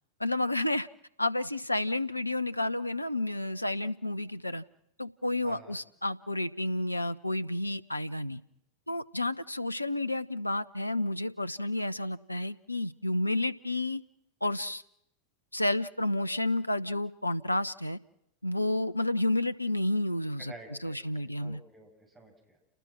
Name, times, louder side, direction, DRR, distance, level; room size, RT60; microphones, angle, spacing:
voice 1, 0.2-0.9 1.2-4.6 5.0-8.4 8.9-14.0 14.4-14.8 15.5-18.0 18.4-20.5 20.8-21.6, left 1 dB, 85° left, 15 dB, 0.8 m, -30 dB
voice 2, 5.4-5.7 20.4-22.6, right 2 dB, 15° right, 2 dB, 7.7 m, -51 dB
29.5 x 20.0 x 6.1 m, 0.79 s
figure-of-eight pair, 90°, 0 cm